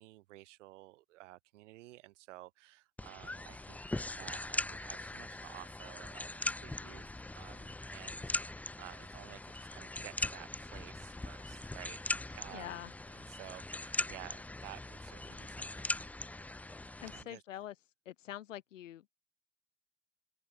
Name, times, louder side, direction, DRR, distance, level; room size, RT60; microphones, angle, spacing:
voice 1, 0.0-3.8 4.1-12.8 13.1-16.0 17.1-17.6, right 18 dB, 70° right, 2.4 m, -53 dB
sound 1, 3.0-17.2, left 2 dB, 5° left, 0.4 m, -41 dB
voice 2, 12.5-12.9 17.0-17.8 18.0-19.1, left 12 dB, 75° left, 1.1 m, -45 dB
open air
figure-of-eight pair, 55°, 38 cm